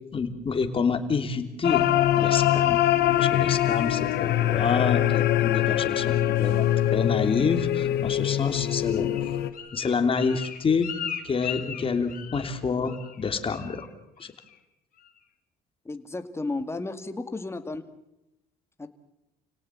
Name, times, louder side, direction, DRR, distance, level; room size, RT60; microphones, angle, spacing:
voice 1, 0.1-1.9 2.2-2.8 3.2-9.1 9.7-11.0 11.2-13.9 14.2-14.3, left 5 dB, 30° left, 7 dB, 3.1 m, -28 dB
sound 1, 1.6-9.5, left 12 dB, 75° left, 1.6 m, -23 dB
Bird, 8.5-12.6 12.9-13.2 13.5-13.9 14.2-14.6 15.0-15.1, left 9 dB, 55° left, 3.3 m, -38 dB
voice 2, 15.9-17.8 18.8-18.9, left 2 dB, 15° left, 8 dB, 2.2 m, -33 dB
29.5 x 18.0 x 7.5 m, 0.88 s
cardioid pair, 110°, 17 cm